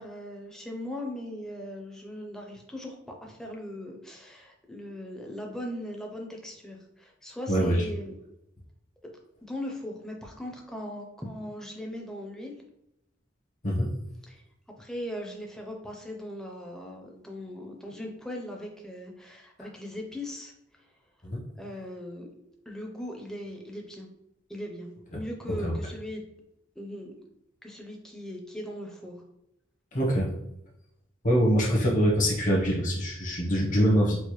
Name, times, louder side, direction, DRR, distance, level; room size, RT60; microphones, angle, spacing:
voice 1, 0.0-2.9 3.2-8.1 9.0-9.1 9.4-12.6 14.3-14.4 14.8-20.5 21.6-22.3 22.7-24.1 24.5-26.2 26.8-27.1 27.6-29.2, left 1 dB, 5° left, 0 dB, 0.5 m, -39 dB
voice 2, 7.5-7.8 13.6-13.9 21.2-21.4 25.6-25.7 29.9-30.3 31.2-34.2, equal, 40° left, -3 dB, 0.8 m, -24 dB
4.5 x 2.0 x 3.0 m, 0.82 s
head